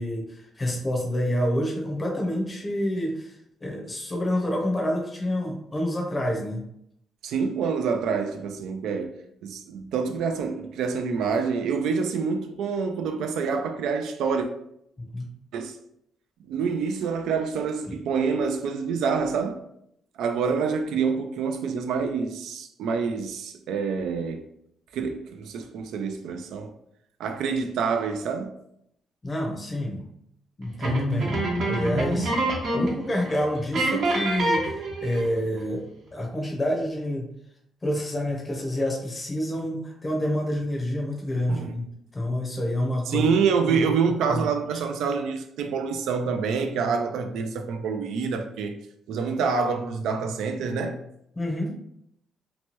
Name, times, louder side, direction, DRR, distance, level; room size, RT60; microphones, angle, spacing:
voice 1, 0.0-3.4 3.6-6.6 15.0-15.3 17.9-18.0 29.2-30.0 30.6-31.3 31.7-32.3 32.7-35.9 36.1-37.3 37.8-41.9 42.1-43.3 43.7-43.8 44.3-44.5 51.4-51.7, left 1 dB, 25° left, 0.6 m, -28 dB
voice 2, 7.2-9.2 9.4-14.5 15.5-15.7 16.4-19.6 20.2-24.4 24.9-26.7 27.2-28.5 41.5-41.7 43.1-48.8 49.1-51.0, right 5 dB, 80° right, 0.3 m, -27 dB
sound 1, 30.8-33.0 33.3-33.4 33.7-35.4, right 1 dB, 65° right, 0.9 m, -26 dB
2.9 x 2.2 x 2.9 m
cardioid pair, 90°, 0 cm